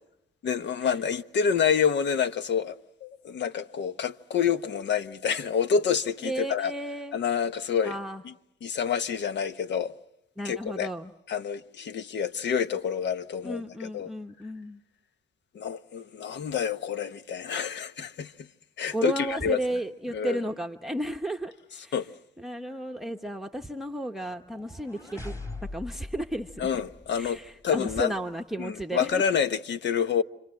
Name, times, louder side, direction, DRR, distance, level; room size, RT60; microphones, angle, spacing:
voice 1, 0.4-6.7 7.1-8.0 8.2-8.3 8.6-9.9 10.4-10.9 11.3-14.1 15.5-18.5 18.8-19.6 20.1-20.4 21.9-22.1 26.6-27.4 27.6-28.1 28.6-30.2, left 7 dB, 65° left, 1.1 m, -28 dB
voice 2, 6.2-7.2 7.8-8.2 10.4-11.1 13.4-14.8 18.9-21.9 22.4-25.3 25.6-26.8 27.1-29.2, right 1 dB, ahead, 1.0 m, -33 dB
sound 1, 24.3-27.5, left 2 dB, 15° left, 3.7 m, -41 dB
30.0 x 25.5 x 7.7 m
cardioid pair, 90°, 20 cm